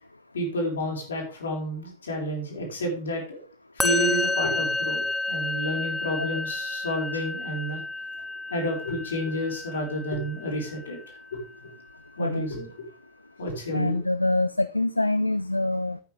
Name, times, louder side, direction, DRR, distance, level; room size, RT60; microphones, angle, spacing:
voice 1, 0.3-3.4 3.7-7.8 8.5-11.0 11.3-11.7 12.2-12.7 13.4-14.0, equal, 70° left, 0 dB, 4.8 m, -30 dB
Musical instrument, 3.8-11.1, left 2 dB, 5° left, 0.4 m, -30 dB
voice 2, 13.7-16.0, left 2 dB, 85° left, 14 dB, 0.4 m, -25 dB
12.5 x 9.3 x 3.5 m, 0.35 s
figure-of-eight pair, 90°, 0 cm